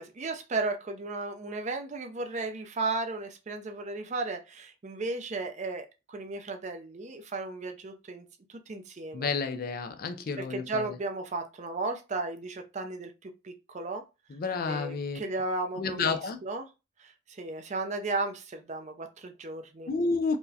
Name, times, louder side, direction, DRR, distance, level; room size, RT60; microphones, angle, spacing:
voice 1, 0.0-9.3 10.4-14.0 14.7-16.7 17.0-19.9, right 3 dB, 35° right, 0.4 m, -35 dB
voice 2, 9.1-11.0 14.3-15.2 15.8-16.4 19.9-20.4, left 4 dB, 45° left, 0.3 m, -30 dB
4.5 x 2.1 x 2.7 m
head